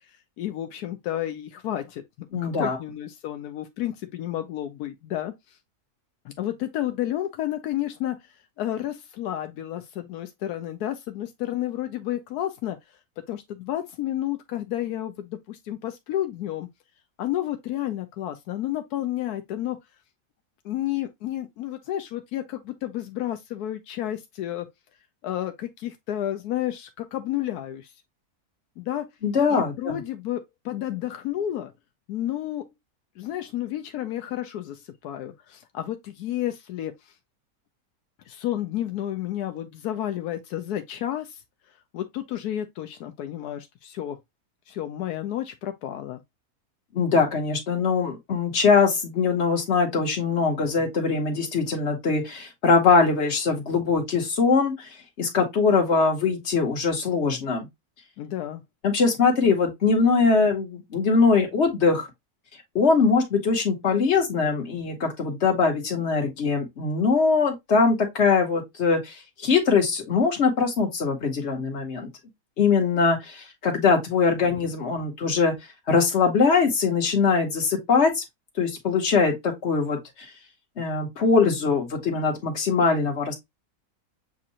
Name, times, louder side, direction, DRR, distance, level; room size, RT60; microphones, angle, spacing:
voice 1, 0.4-5.6 6.2-8.2 8.6-12.8 13.3-16.7 17.2-19.8 20.6-24.7 25.2-27.9 28.8-29.1 29.5-31.7 32.1-32.7 33.2-37.1 38.3-41.4 41.9-44.2 44.7-46.2 58.2-58.6, left 12 dB, 85° left, 1.1 m, -31 dB
voice 2, 2.3-2.8 29.2-29.9 46.9-54.9 55.2-57.7 58.8-62.1 62.7-72.1 72.6-75.5 75.9-78.2 78.6-80.3 80.8-83.3, left 4 dB, 45° left, 1.6 m, -22 dB
7.4 x 2.5 x 2.8 m
omnidirectional pair, 1.6 m